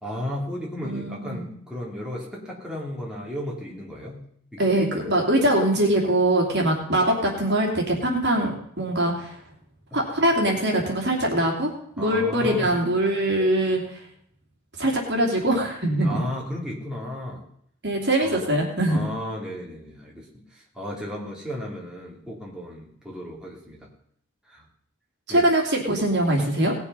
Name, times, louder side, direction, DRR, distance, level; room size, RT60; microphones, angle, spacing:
voice 1, 0.0-4.2 4.5-5.1 12.0-12.7 16.0-17.4 18.2-18.4 18.9-20.3 20.5-23.9 24.5-24.6 25.3-25.5, left 1 dB, 5° right, -4 dB, 3.0 m, -34 dB
voice 2, 0.8-1.4 4.6-9.4 9.9-11.7 12.0-13.8 14.8-16.2 17.8-19.1 25.3-26.7, right 1 dB, 55° right, 1 dB, 2.8 m, -22 dB
18.5 x 6.9 x 5.5 m, 0.68 s
head